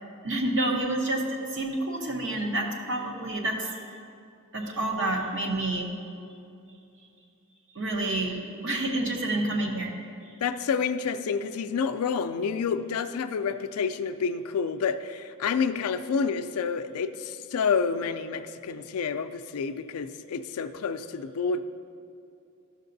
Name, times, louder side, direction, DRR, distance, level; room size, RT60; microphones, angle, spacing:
voice 1, 0.2-3.7 4.5-5.9 7.7-10.0, right 1 dB, 55° right, 1 dB, 0.9 m, -28 dB
voice 2, 10.4-21.6, left 5 dB, 80° left, 10 dB, 0.4 m, -29 dB
12.0 x 6.6 x 2.6 m, 2.6 s
head